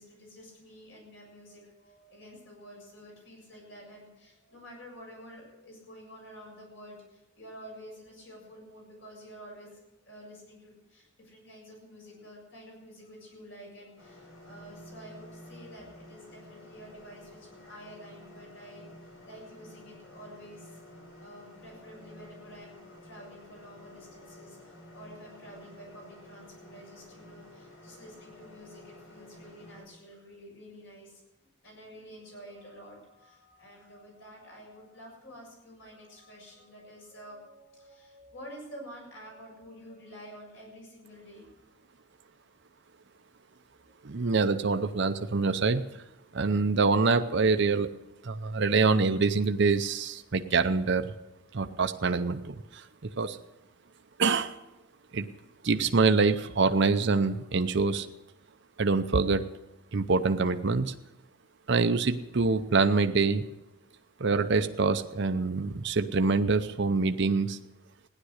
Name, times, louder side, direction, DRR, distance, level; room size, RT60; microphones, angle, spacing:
voice 1, 0.0-9.8 10.0-41.5, equal, 65° left, -1 dB, 7.2 m, -49 dB
sound 1, 14.0-29.8, left 1 dB, 90° left, 5.1 m, -51 dB
voice 2, 44.0-45.8 46.3-47.9 48.2-51.1 51.5-53.4 54.2-54.5 55.1-55.3 55.6-58.1 58.8-59.4 59.9-60.9 61.7-63.4 64.2-67.6, right 4 dB, 55° right, 9 dB, 0.7 m, -25 dB
16.0 x 10.5 x 6.5 m, 0.94 s
head